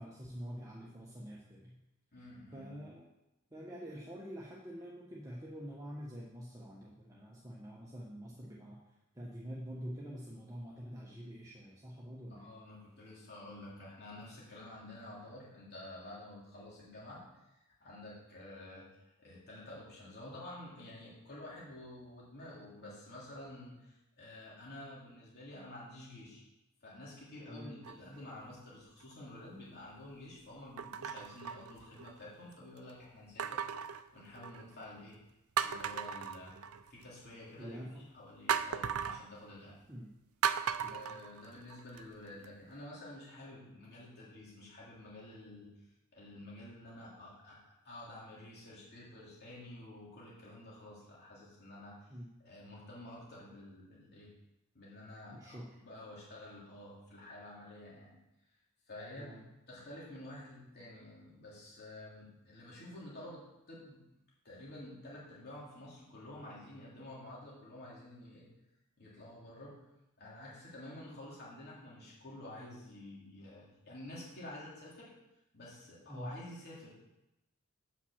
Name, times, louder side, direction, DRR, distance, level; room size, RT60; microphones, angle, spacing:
voice 1, 0.0-1.8 2.2-3.1 3.5-8.8 9.1-12.5 27.5-27.8 37.6-38.1 39.9-40.1 40.8-41.2 52.1-52.3 55.3-55.8 59.2-59.4 76.1-76.3, equal, 15° right, -5 dB, 1.1 m, -46 dB
voice 2, 2.1-2.8 12.3-17.2 17.5-18.9 19.2-26.4 26.8-33.6 34.1-35.2 35.6-36.6 36.9-39.8 40.5-40.6 40.9-52.1 52.4-54.3 54.7-58.2 58.9-59.4 59.7-64.0 64.4-68.5 69.0-69.9 70.2-75.1 75.5-76.9, left 1 dB, 50° left, -6 dB, 3.3 m, -50 dB
sound 1, 27.8-28.3 29.0-29.1 30.8-32.2 33.4-34.8 35.2-35.3 35.6-37.0 38.5-39.2 40.4-42.0 42.4-42.5, right 8 dB, 80° right, 0.5 m, -37 dB
8.2 x 5.8 x 7.2 m, 0.92 s
head